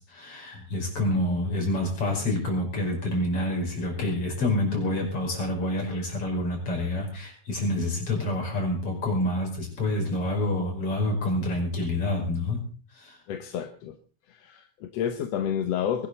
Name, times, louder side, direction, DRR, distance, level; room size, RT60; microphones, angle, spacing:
voice 1, 0.1-12.6 12.9-13.2, left 1 dB, 45° left, 0 dB, 6.3 m, -27 dB
voice 2, 13.3-14.0 14.3-16.1, left 9 dB, 65° left, 7 dB, 2.0 m, -30 dB
22.0 x 12.5 x 4.1 m, 0.39 s
omnidirectional pair, 3.4 m